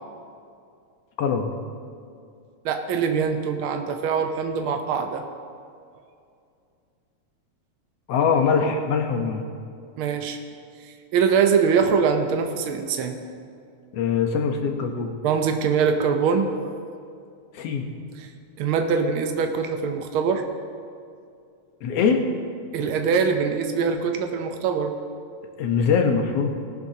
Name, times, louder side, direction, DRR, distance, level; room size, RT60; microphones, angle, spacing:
voice 1, 1.2-1.5 8.1-9.4 13.9-15.2 17.5-17.9 21.8-22.2 25.6-26.5, left 6 dB, 65° left, 4 dB, 1.9 m, -22 dB
voice 2, 2.6-5.2 10.0-10.4 11.1-13.2 15.2-16.5 18.2-18.3 18.6-20.4 22.7-24.9, right 6 dB, 90° right, 5 dB, 1.1 m, -23 dB
19.0 x 11.5 x 2.8 m, 2.4 s
omnidirectional pair, 3.3 m